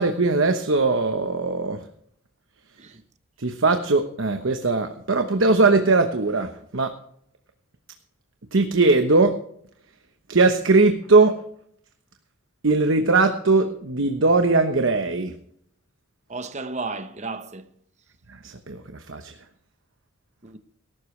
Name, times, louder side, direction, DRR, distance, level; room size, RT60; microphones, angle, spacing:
voice 1, 0.0-1.8 3.4-6.9 8.5-9.3 10.3-11.3 12.6-15.3 18.4-18.8 19.1-19.3, right 3 dB, 60° right, 1.0 m, -20 dB
voice 2, 16.3-17.7 20.4-20.6, right 3 dB, 30° right, 0.9 m, -33 dB
19.0 x 12.0 x 3.3 m
head